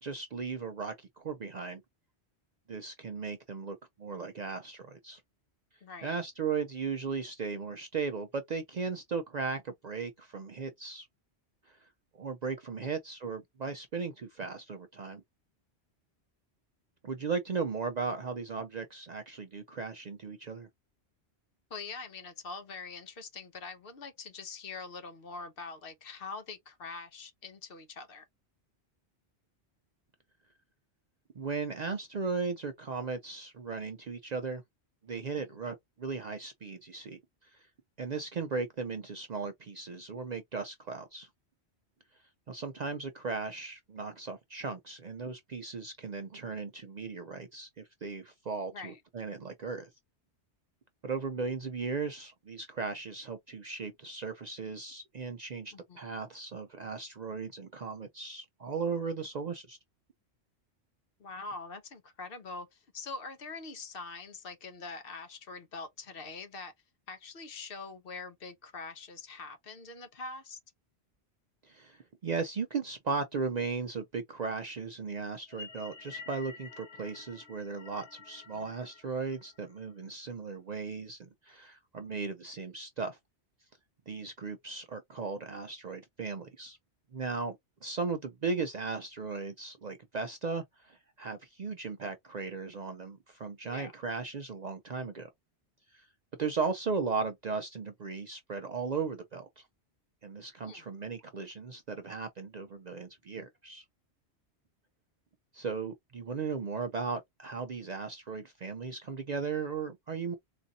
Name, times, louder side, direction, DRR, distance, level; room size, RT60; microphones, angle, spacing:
voice 1, 0.0-1.8 2.7-5.2 6.0-11.1 11.7-11.9 12.2-15.2 17.0-20.7 31.4-34.6 35.0-37.7 38.0-41.3 42.5-49.9 51.0-59.8 71.6-83.2 84.1-86.8 87.1-95.3 95.9-96.1 96.4-99.6 100.2-103.8 105.5-110.3, right 4 dB, 55° right, 0.5 m, -37 dB
voice 2, 5.8-6.2 12.8-12.9 21.7-28.2 48.7-49.0 55.7-56.0 61.2-66.7 67.1-70.6 78.5-78.7 93.6-93.9 100.6-100.8, left 4 dB, 60° left, 0.9 m, -44 dB
sound 1, 75.4-79.9, left 5 dB, 85° left, 1.1 m, -49 dB
4.0 x 2.6 x 2.7 m
omnidirectional pair, 1.2 m